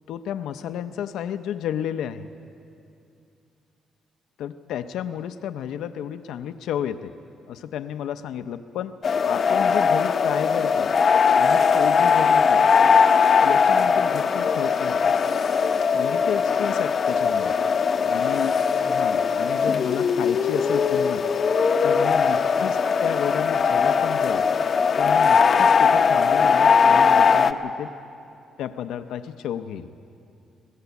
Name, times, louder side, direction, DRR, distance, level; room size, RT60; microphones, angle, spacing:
voice 1, 0.1-2.3 4.4-7.1 7.5-10.9 11.3-12.6 13.4-15.1 15.9-17.5 18.1-21.2 21.8-24.4 25.0-28.0 28.6-29.9, left 9 dB, 80° left, 11 dB, 0.7 m, -32 dB
sound 1, 9.0-27.5, left 6 dB, 45° left, 0.8 m, -20 dB
21.5 x 16.0 x 8.2 m, 2.6 s
cardioid pair, 90°, 0 cm